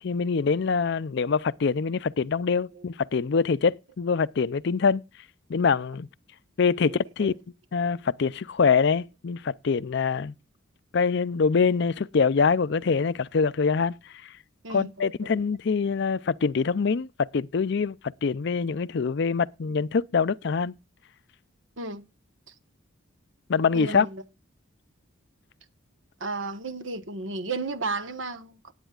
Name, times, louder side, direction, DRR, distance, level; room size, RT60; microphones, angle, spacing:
voice 1, 0.0-5.0 5.5-6.1 6.6-7.3 7.7-10.3 10.9-14.0 14.2-14.3 14.7-17.1 17.3-20.7 23.5-24.1, left 5 dB, 55° left, 0.5 m, -24 dB
voice 2, 6.9-7.3 14.6-15.4 21.8-22.0 23.7-24.2 26.2-28.7, right 3 dB, 65° right, 1.3 m, -34 dB
18.0 x 9.0 x 2.4 m
head